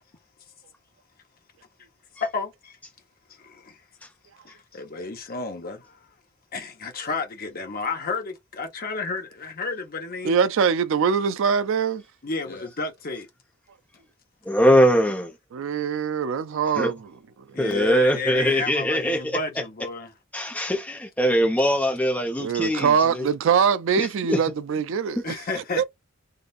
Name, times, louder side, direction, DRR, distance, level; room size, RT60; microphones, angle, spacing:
voice 1, 2.2-2.8 3.3-3.8 4.4-6.1 6.5-10.4 12.2-13.3 17.5-20.1 25.2-25.8, left 4 dB, 45° left, 1.1 m, -31 dB
voice 2, 10.2-12.0 15.5-17.1 22.4-25.3 25.8-25.9, right 6 dB, 65° right, 0.4 m, -23 dB
voice 3, 14.5-15.3 16.7-16.9 17.6-19.4 20.3-23.3 24.0-24.4, equal, 5° left, 0.9 m, -22 dB
3.7 x 2.6 x 2.5 m
head